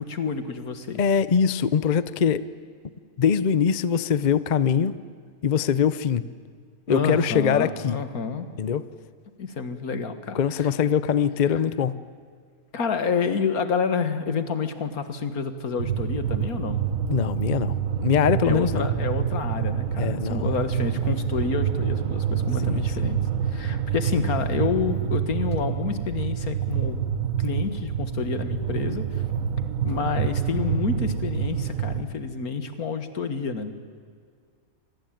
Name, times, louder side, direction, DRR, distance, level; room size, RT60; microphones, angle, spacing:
voice 1, 0.0-1.0 6.9-8.5 9.4-10.7 12.7-16.8 18.4-23.2 23.5-27.0 27.4-29.2 29.8-33.7, left 5 dB, 85° left, 10 dB, 2.1 m, -29 dB
voice 2, 1.0-2.4 3.2-4.9 5.4-6.2 6.9-8.0 8.6-8.8 10.3-11.9 17.1-17.7 18.0-18.9 20.0-20.6 22.7-22.9, left 7 dB, 40° left, 16 dB, 0.7 m, -22 dB
sound 1, 15.8-32.0, right 8 dB, 65° right, 1.6 m, -27 dB
25.5 x 19.5 x 9.1 m, 2.1 s
omnidirectional pair, 1.5 m